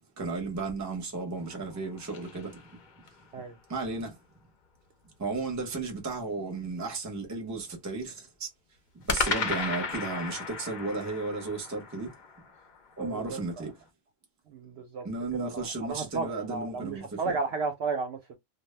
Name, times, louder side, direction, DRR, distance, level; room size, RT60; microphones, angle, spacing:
voice 1, 0.2-2.6 3.7-4.1 5.2-8.1 8.4-8.5 9.1-12.1 13.0-13.7 15.0-17.4, right 3 dB, 20° right, 0.5 m, -34 dB
sound 1, 1.4-3.3 9.1-13.4, left 4 dB, 55° left, 0.5 m, -35 dB
voice 2, 13.0-13.4 14.5-15.1 15.3-18.4, right 4 dB, 65° right, 0.7 m, -33 dB
2.1 x 2.0 x 3.2 m
omnidirectional pair, 1.3 m